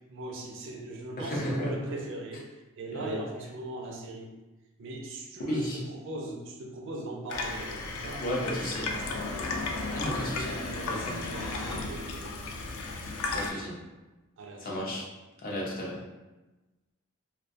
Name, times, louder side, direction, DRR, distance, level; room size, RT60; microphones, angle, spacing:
voice 1, 0.1-2.4 2.8-4.3 4.8-8.3 8.6-9.3 9.8-12.5 14.4-15.0, right 2 dB, 60° right, 1 dB, 0.4 m, -40 dB
voice 2, 1.2-1.7 2.9-3.2 5.5-5.8 8.2-8.9 9.9-10.5 10.9-11.3 13.3-13.8 14.6-15.0 15.4-16.0, equal, 45° left, -4 dB, 0.6 m, -33 dB
Water tap faucet / Sink (filling or washing), 7.3-13.5, left 3 dB, 85° left, 0.4 m, -34 dB
2.3 x 2.2 x 2.6 m, 1.1 s
head